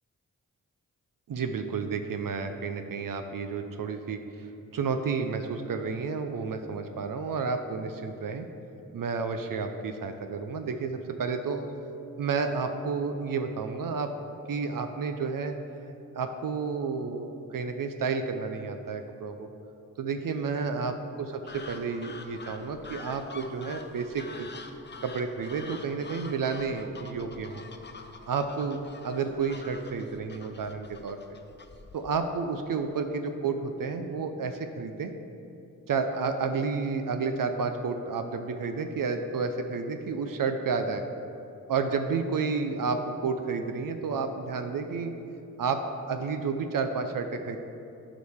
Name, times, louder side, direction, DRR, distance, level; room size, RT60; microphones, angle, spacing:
voice 1, 1.3-8.5 8.9-11.7 12.2-14.1 14.5-15.5 15.8-19.5 20.0-24.5 25.0-27.6 28.3-31.2 31.9-35.1 35.9-41.1 41.7-45.1 45.6-45.8 46.1-47.6, right 5 dB, 65° right, 7 dB, 0.6 m, -31 dB
sound 1, 21.5-32.2, left 3 dB, 30° left, 0.6 m, -46 dB
11.0 x 4.9 x 3.5 m, 2.8 s
cardioid pair, 45°, 35 cm